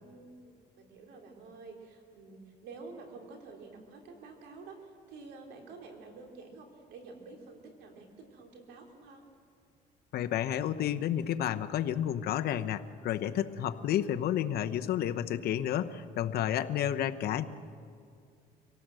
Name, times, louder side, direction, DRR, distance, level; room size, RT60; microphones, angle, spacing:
voice 1, 0.0-9.2, right 3 dB, 85° right, 2 dB, 3.6 m, -49 dB
voice 2, 10.1-17.4, left 10 dB, 65° left, 8 dB, 1.0 m, -31 dB
25.0 x 18.0 x 7.7 m, 2.3 s
cardioid pair, 110°, 17 cm